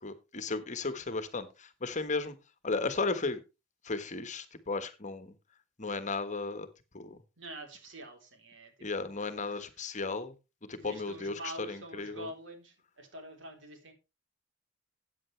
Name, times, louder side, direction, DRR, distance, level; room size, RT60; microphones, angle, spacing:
voice 1, 0.0-2.3 2.6-3.4 3.8-5.3 5.8-6.7 6.9-7.2 8.8-10.3 10.7-11.4 11.7-12.3, left 3 dB, 40° left, 11 dB, 1.3 m, -35 dB
voice 2, 7.4-8.9 9.3-9.7 10.8-13.9, right 1 dB, 80° right, 4 dB, 3.7 m, -46 dB
14.0 x 8.8 x 3.3 m, 0.27 s
head